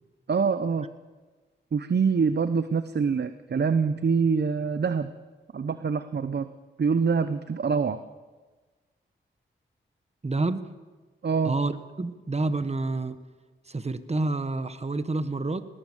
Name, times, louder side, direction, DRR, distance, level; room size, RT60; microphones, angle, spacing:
voice 1, 0.3-0.9 1.7-5.1 5.5-6.5 6.8-8.0 11.2-11.5, right 5 dB, 55° right, 12 dB, 0.9 m, -25 dB
voice 2, 10.2-10.6 11.4-13.2 13.7-15.7, right 2 dB, 30° right, 12 dB, 1.4 m, -28 dB
19.0 x 19.0 x 7.4 m, 1.3 s
cardioid pair, 50°, 20 cm